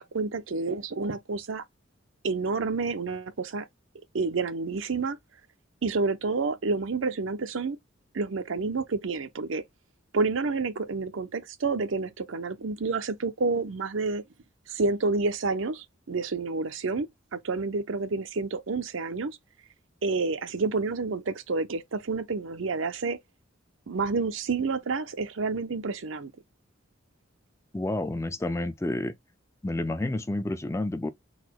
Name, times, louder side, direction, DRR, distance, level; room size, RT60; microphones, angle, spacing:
voice 1, 0.0-1.6 2.2-3.7 4.1-5.2 5.8-7.8 8.1-9.6 10.1-14.2 14.7-19.4 20.0-23.2 23.9-26.3, right 4 dB, 75° right, 0.6 m, -29 dB
voice 2, 27.7-29.1 29.6-31.1, left 2 dB, 15° left, 0.4 m, -29 dB
4.0 x 2.2 x 4.5 m
head